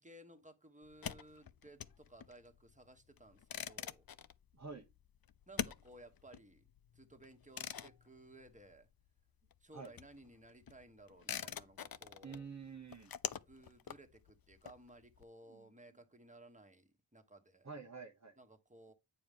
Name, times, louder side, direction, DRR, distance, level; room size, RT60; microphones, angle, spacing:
voice 1, 0.0-4.1 5.5-6.6 6.9-8.9 9.6-12.5 13.5-17.7 18.4-18.9, right 1 dB, 20° right, 1.3 m, -58 dB
sound 1, 0.8-9.2 9.5-15.2, left 8 dB, 60° left, 0.5 m, -46 dB
voice 2, 12.2-13.1 17.6-18.3, right 5 dB, 40° right, 0.9 m, -48 dB
8.7 x 4.8 x 3.6 m
wide cardioid pair, 55°, 40 cm